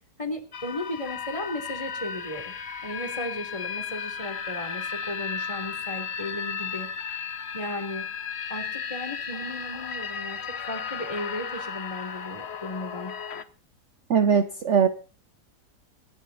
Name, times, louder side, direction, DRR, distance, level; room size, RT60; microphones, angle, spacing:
voice 1, 0.2-2.5 2.8-6.9 7.5-8.1 8.5-13.1, left 1 dB, 20° left, 5 dB, 3.3 m, -35 dB
sound 1, 0.5-13.4, left 7 dB, 45° left, 1.0 m, -35 dB
voice 2, 14.1-14.9, right 7 dB, 55° right, 10 dB, 1.1 m, -20 dB
25.5 x 11.0 x 4.1 m, 0.36 s
omnidirectional pair, 1.7 m